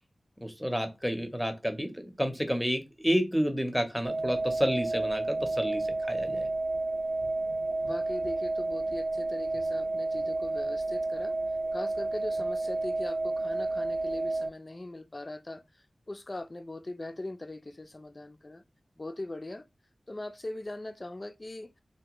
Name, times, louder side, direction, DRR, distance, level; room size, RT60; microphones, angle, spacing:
voice 1, 0.4-6.5, equal, ahead, 0.6 m, -30 dB
sound 1, 4.0-14.5, right 2 dB, 80° right, 0.3 m, -31 dB
voice 2, 7.8-11.4 11.7-15.6 16.1-18.6 19.0-19.7 20.1-21.7, left 2 dB, 35° left, 0.4 m, -40 dB
3.4 x 2.1 x 2.9 m
wide cardioid pair, 75°, 0 cm